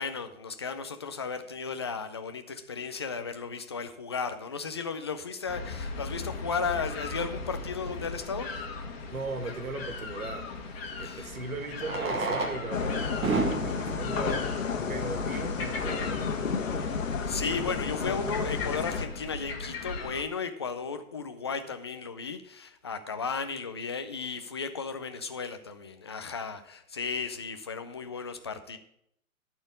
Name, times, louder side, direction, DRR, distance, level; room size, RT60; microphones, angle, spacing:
voice 1, 0.0-8.5 11.0-11.3 17.3-28.8, left 5 dB, 20° left, 0.4 m, -35 dB
sound 1, 5.5-20.2, left 3 dB, 45° left, 1.7 m, -39 dB
Fireworks, 8.2-8.3 10.6-10.7 11.7-15.5 16.3-16.4 16.5-16.6 16.8-17.0 17.5-17.7, right 3 dB, 15° right, 1.1 m, -33 dB
voice 2, 9.1-10.5 11.0-14.6 14.9-17.2, right 3 dB, 75° right, 2.0 m, -38 dB
sound 2, 12.7-19.1, left 5 dB, 65° left, 1.4 m, -31 dB
11.5 x 4.4 x 8.2 m
hypercardioid pair, 145°, 42 cm